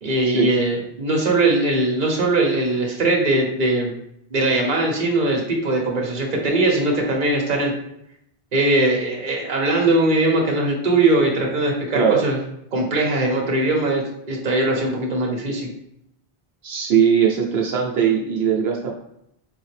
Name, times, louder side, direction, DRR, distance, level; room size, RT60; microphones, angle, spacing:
voice 1, 0.0-3.9 4.3-7.7 8.5-12.4 12.7-15.7, right 2 dB, 50° right, 0 dB, 1.1 m, -20 dB
voice 2, 16.6-18.9, right 7 dB, 80° right, -1 dB, 0.9 m, -19 dB
3.9 x 3.3 x 3.3 m, 0.76 s
omnidirectional pair, 1.0 m